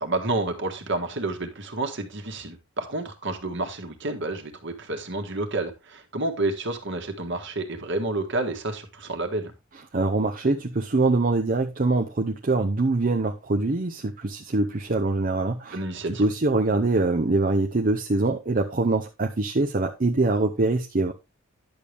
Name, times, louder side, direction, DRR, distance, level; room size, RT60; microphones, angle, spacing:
voice 1, 0.0-9.5 15.7-16.2, right 2 dB, 60° right, 1.8 m, -30 dB
voice 2, 9.9-15.8 16.2-21.1, right 2 dB, 40° right, 0.7 m, -24 dB
10.5 x 6.9 x 3.4 m
head